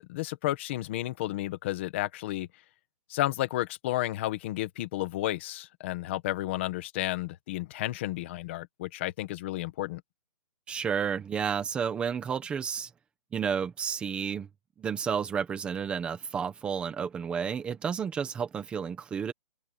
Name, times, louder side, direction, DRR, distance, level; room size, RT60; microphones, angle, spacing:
voice 1, 0.0-2.5 3.1-10.0, left 15 dB, 15° left, 1.3 m, -32 dB
voice 2, 10.7-12.9 13.3-14.5 14.8-19.3, right 7 dB, 5° right, 1.4 m, -31 dB
hypercardioid pair, 180°, 21 cm